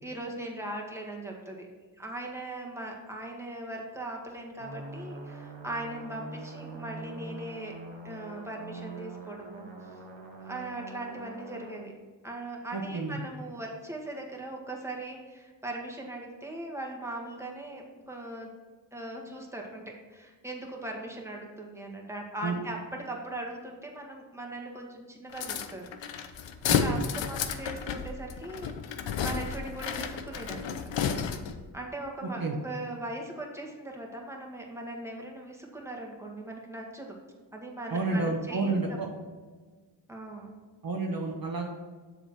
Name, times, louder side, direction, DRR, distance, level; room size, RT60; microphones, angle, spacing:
voice 1, 0.0-1.7 2.0-7.7 8.0-9.7 10.4-11.9 12.2-18.5 18.9-25.9 26.6-30.9 31.7-37.2 37.5-38.8 40.1-40.5, right 2 dB, 5° right, 0 dB, 1.8 m, -39 dB
sound 1, 4.6-11.7, right 2 dB, 90° right, 1.2 m, -43 dB
voice 2, 12.7-13.2 22.4-22.6 26.7-27.1 32.4-32.5 37.9-39.1 40.8-41.7, right 3 dB, 50° right, 0 dB, 1.2 m, -30 dB
sound 2, 25.3-31.7, left 7 dB, 75° left, 0.7 m, -32 dB
7.1 x 4.0 x 6.1 m, 1.4 s
cardioid pair, 45°, 45 cm